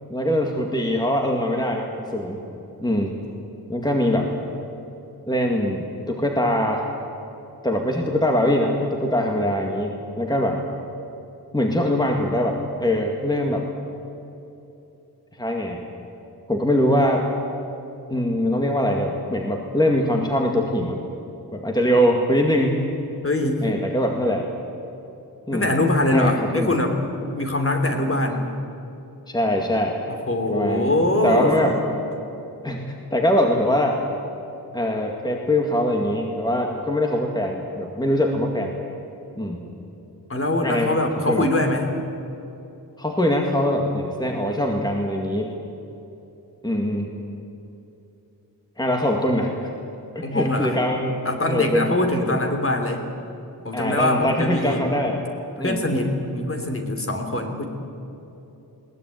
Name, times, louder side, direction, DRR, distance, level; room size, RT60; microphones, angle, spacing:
voice 1, 0.1-2.4 2.8-3.2 3.7-4.3 5.3-6.9 7.6-10.6 11.5-13.7 15.4-15.8 16.5-17.3 18.1-21.0 21.5-22.8 23.6-24.5 25.5-25.7 26.1-26.7 29.3-30.0 30.5-30.9 31.2-31.8 32.6-32.8 33.1-34.0 34.7-38.8 39.4-39.6 40.6-41.0 41.3-41.5 43.0-45.5 46.6-47.1 48.8-49.5 50.1-51.9 52.2-52.4 53.7-55.2 55.6-55.8, left 1 dB, 10° left, 1 dB, 2.1 m, -22 dB
voice 2, 23.2-23.6 25.5-27.0 27.3-28.5 30.3-31.8 40.3-41.9 50.2-50.8 51.2-53.0 53.6-54.8 55.6-57.6, left 1 dB, 35° left, 4 dB, 3.0 m, -23 dB
21.5 x 19.0 x 9.2 m, 2.9 s
wide cardioid pair, 125°, 40 cm